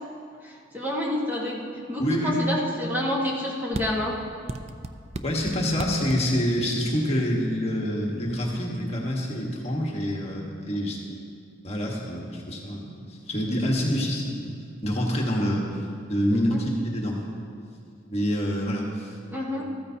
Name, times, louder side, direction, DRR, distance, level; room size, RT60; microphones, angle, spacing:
voice 1, 0.4-4.1 16.3-16.6 19.3-19.6, left 1 dB, 10° right, -4 dB, 1.5 m, -28 dB
voice 2, 2.0-2.4 5.2-11.0 11.6-14.5 14.8-17.2 18.1-19.2, equal, 35° left, -1 dB, 1.4 m, -27 dB
sound 1, 3.7-3.9 4.5-6.2 7.6-8.0 8.3-8.4 8.7-9.9, right 2 dB, 35° right, 0.5 m, -36 dB
14.0 x 14.0 x 2.9 m, 2.3 s
head